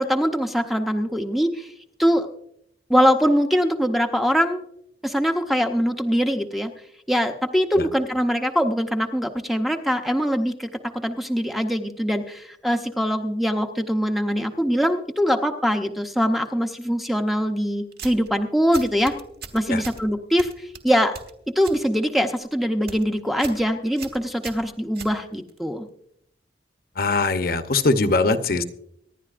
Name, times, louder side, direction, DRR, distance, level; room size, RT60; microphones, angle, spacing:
voice 1, 0.0-1.7 2.0-2.3 2.9-4.6 5.0-6.7 7.1-19.1 19.5-21.1 21.6-25.9, equal, ahead, 5 dB, 0.7 m, -22 dB
sound 1, 17.9-18.3 18.7-20.0 20.4-21.8 22.2-22.5 22.8-23.0 23.4-23.6 24.0-25.6, right 5 dB, 55° right, 1.3 m, -39 dB
voice 2, 27.0-28.6, left 3 dB, 50° left, 9 dB, 0.8 m, -21 dB
25.0 x 11.0 x 2.5 m, 0.73 s
head